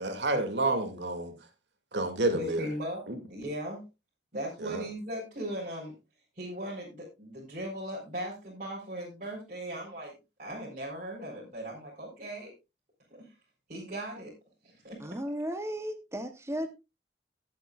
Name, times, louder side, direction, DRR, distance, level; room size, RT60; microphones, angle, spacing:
voice 1, 0.0-1.3 1.9-2.6 3.1-3.2 4.6-4.8, right 2 dB, 85° right, 2.5 m, -29 dB
voice 2, 2.3-3.0 3.3-3.8 4.3-5.9 6.4-10.1 10.4-12.5 13.1-13.3 13.7-14.3 14.6-15.0, equal, 45° right, 4.4 m, -38 dB
voice 3, 15.0-16.7, equal, 15° right, 0.9 m, -35 dB
18.5 x 8.0 x 2.4 m
head